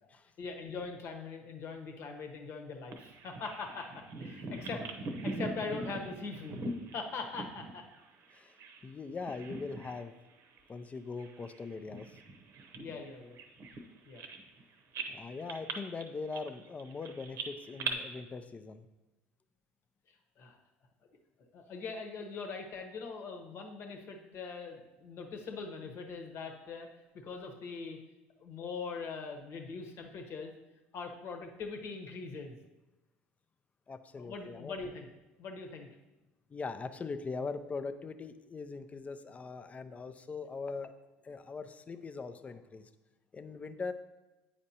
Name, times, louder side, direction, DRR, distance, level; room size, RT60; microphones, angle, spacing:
voice 1, 0.4-4.9 5.2-6.7 6.9-7.8 12.8-13.4 14.0-14.2 20.4-20.6 21.5-26.9 27.1-28.0 28.4-30.5 30.9-32.6 34.2-35.1 35.4-35.9, left 4 dB, 55° left, 3 dB, 1.1 m, -42 dB
Bird vocalization bird call bird song, 2.9-8.9 9.2-10.1 10.4-10.6 11.2-14.6 14.9-17.9, right 3 dB, 55° right, 0.8 m, -42 dB
voice 2, 8.8-10.1 10.7-12.2 15.1-18.9 33.9-34.8 36.5-40.9 41.2-42.9 43.3-43.9, left 4 dB, 25° left, 9 dB, 0.5 m, -41 dB
8.7 x 5.1 x 2.8 m, 1.0 s
hypercardioid pair, 80°, 5 cm